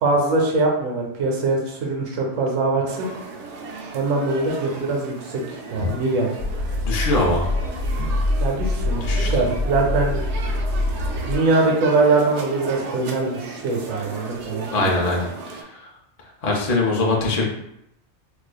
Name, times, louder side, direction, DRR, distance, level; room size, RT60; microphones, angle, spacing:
voice 1, 0.0-3.1 3.9-6.4 8.0-8.1 8.4-9.0 9.3-10.1 11.3-14.9, right 3 dB, 90° right, 0 dB, 1.1 m, -22 dB
sound 1, 2.9-15.6, right 3 dB, 70° right, 0.8 m, -36 dB
sound 2, 6.4-11.4, left 2 dB, 85° left, 1.2 m, -24 dB
voice 2, 6.8-7.5 9.0-9.3 14.7-15.3 16.4-17.5, left 2 dB, 45° left, -2 dB, 0.5 m, -21 dB
4.6 x 2.4 x 2.2 m, 0.80 s
omnidirectional pair, 1.3 m